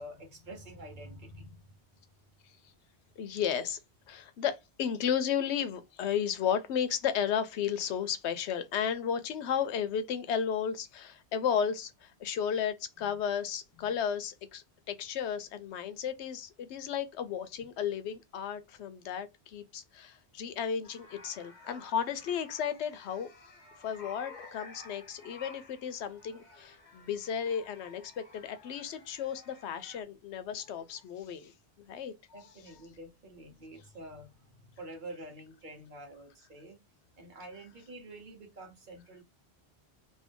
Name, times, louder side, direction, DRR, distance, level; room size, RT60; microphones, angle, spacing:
voice 1, 0.0-1.6 13.0-13.1 13.7-13.9 32.3-36.8 37.2-39.2, right 1 dB, 50° right, 1.1 m, -47 dB
voice 2, 3.2-3.8 4.1-31.5 31.8-32.1, left 8 dB, 90° left, 0.9 m, -34 dB
sound 1, 20.8-30.0, left 3 dB, 45° left, 1.0 m, -53 dB
2.7 x 2.6 x 3.5 m
omnidirectional pair, 1.1 m